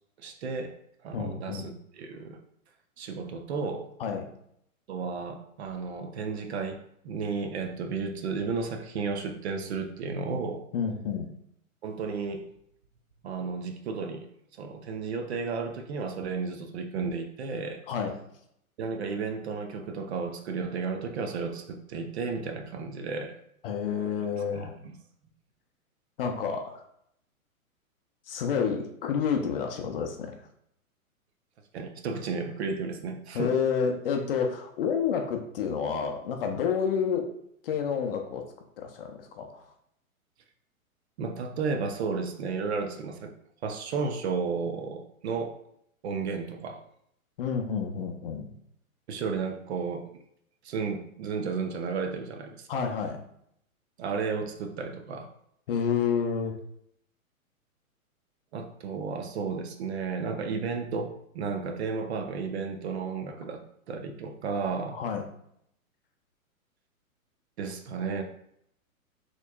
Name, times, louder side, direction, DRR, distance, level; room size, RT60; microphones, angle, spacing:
voice 1, 0.2-0.7 1.0-2.4 3.0-3.9 4.9-10.6 11.8-12.4 13.2-14.3 14.6-17.8 18.8-23.3 24.4-24.9 31.7-33.5 41.2-43.3 43.6-45.6 46.0-46.8 49.1-50.1 50.6-52.7 54.0-55.3 58.5-65.0 67.6-68.2, right 5 dB, 50° right, 6 dB, 0.5 m, -33 dB
voice 2, 1.1-1.7 4.0-4.3 10.7-11.3 17.9-18.1 23.6-24.7 26.2-26.8 28.3-30.3 33.3-37.3 37.6-38.5 38.8-39.6 47.4-48.5 52.7-53.2 55.7-56.5 64.9-65.2, left 6 dB, 45° left, 4 dB, 0.5 m, -29 dB
4.3 x 3.1 x 2.3 m, 0.73 s
hypercardioid pair, 125°, 43 cm